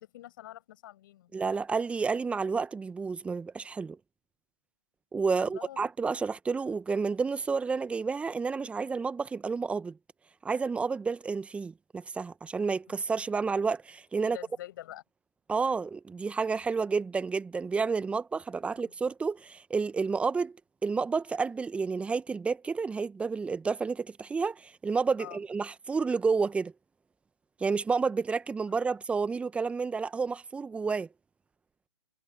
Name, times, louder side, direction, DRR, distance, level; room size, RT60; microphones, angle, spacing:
voice 1, 0.0-1.3 5.3-5.9 12.9-13.0 14.2-15.0 25.2-25.4, left 14 dB, 45° left, 7.4 m, -46 dB
voice 2, 1.3-4.0 5.1-10.0 10.4-14.4 15.5-20.5 20.8-26.7 27.6-31.1, right 4 dB, 5° right, 1.4 m, -30 dB
figure-of-eight pair, 125°, 16 cm